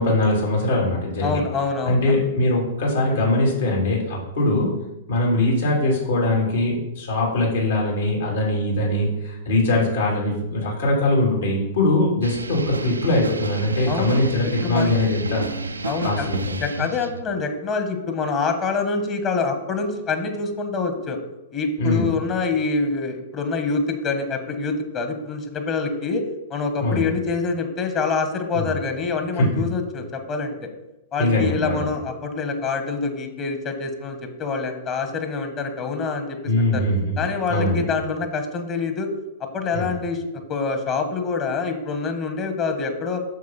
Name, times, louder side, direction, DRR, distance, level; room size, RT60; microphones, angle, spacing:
voice 1, 0.0-1.4 1.9-4.7 5.1-15.4 16.0-16.6 21.8-22.1 26.8-27.0 28.5-28.7 29.4-29.5 31.2-31.8 36.5-37.8 39.7-39.8, left 1 dB, 70° left, -3 dB, 3.4 m, -21 dB
voice 2, 1.2-2.2 13.9-14.2 14.6-14.9 15.8-16.3 16.6-21.2 21.5-26.2 26.5-30.6 31.1-36.8 37.2-39.1 39.4-40.2 40.5-43.2, left 4 dB, 35° left, 6 dB, 1.4 m, -26 dB
sound 1, 12.2-17.2, right 2 dB, 85° right, 0.5 m, -30 dB
9.3 x 6.7 x 4.3 m, 0.94 s
figure-of-eight pair, 100°, 0 cm